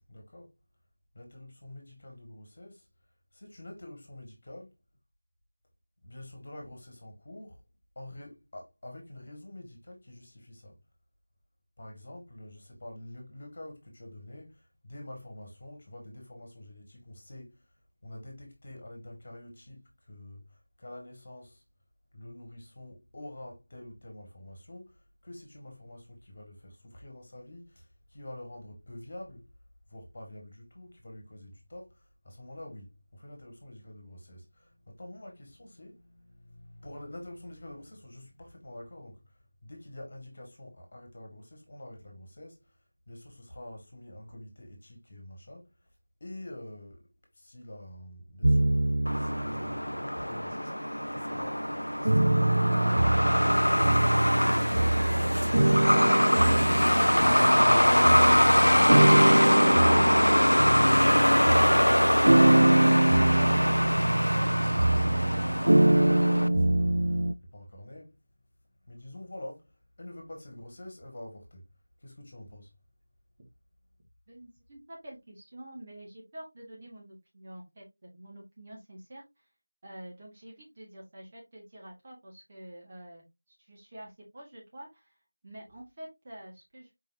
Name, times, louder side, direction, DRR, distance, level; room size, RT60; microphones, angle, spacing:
voice 1, 0.1-0.5 1.1-2.9 3.3-4.7 6.0-7.6 7.9-10.8 11.8-17.6 18.0-21.6 22.1-29.5 29.9-39.3 39.6-42.8 43.1-45.7 46.2-47.1 47.3-62.6 63.0-68.5 68.8-71.6 72.0-72.7, left 1 dB, 40° left, 1.6 m, -47 dB
sound 1, 48.4-50.1 50.8-67.3, right 1 dB, 55° right, 0.3 m, -24 dB
Truck, 49.1-66.5, equal, 85° left, 0.3 m, -24 dB
voice 2, 74.3-79.5 79.8-83.2 83.6-85.2 85.4-87.0, right 1 dB, 30° right, 1.3 m, -48 dB
4.7 x 4.0 x 2.6 m
figure-of-eight pair, 170°, 0 cm